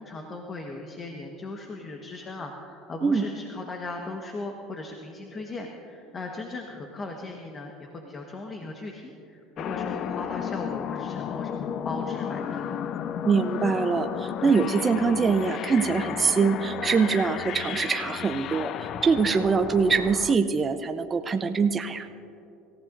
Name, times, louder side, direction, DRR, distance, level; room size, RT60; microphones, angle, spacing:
voice 1, 0.0-12.9, left 2 dB, 30° left, 2 dB, 1.3 m, -38 dB
sound 1, 9.6-20.4, left 9 dB, 50° left, 0.5 m, -33 dB
voice 2, 13.2-22.1, right 5 dB, 25° right, 7 dB, 0.6 m, -24 dB
26.5 x 15.0 x 2.6 m, 2.8 s
supercardioid pair, 100°, 0 cm